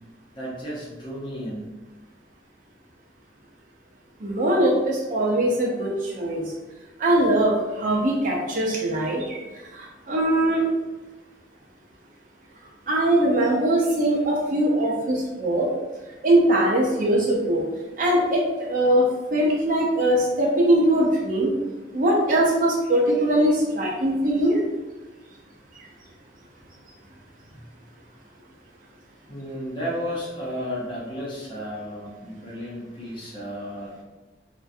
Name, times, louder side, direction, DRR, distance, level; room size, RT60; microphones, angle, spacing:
voice 1, 0.3-1.7 29.3-34.0, equal, 30° left, -5 dB, 0.6 m, -33 dB
voice 2, 4.2-5.9 6.2-6.4 7.0-9.4 10.1-10.6 12.9-15.7 16.2-17.6 18.0-19.0 19.3-21.5 21.9-24.6, right 1 dB, 45° right, -3 dB, 0.5 m, -21 dB
2.4 x 2.1 x 2.6 m, 1.1 s
head